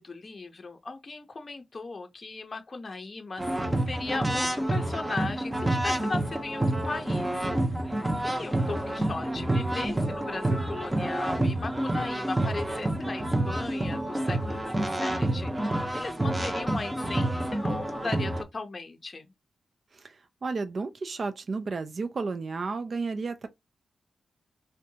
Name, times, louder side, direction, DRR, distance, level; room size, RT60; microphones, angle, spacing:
voice 1, 0.0-7.5 8.2-19.3, left 3 dB, 40° left, 0.6 m, -37 dB
sound 1, 3.4-18.4, right 1 dB, 15° right, 0.6 m, -28 dB
voice 2, 19.9-23.5, right 4 dB, 50° right, 0.3 m, -33 dB
2.7 x 2.1 x 2.6 m
cardioid pair, 70°, 0 cm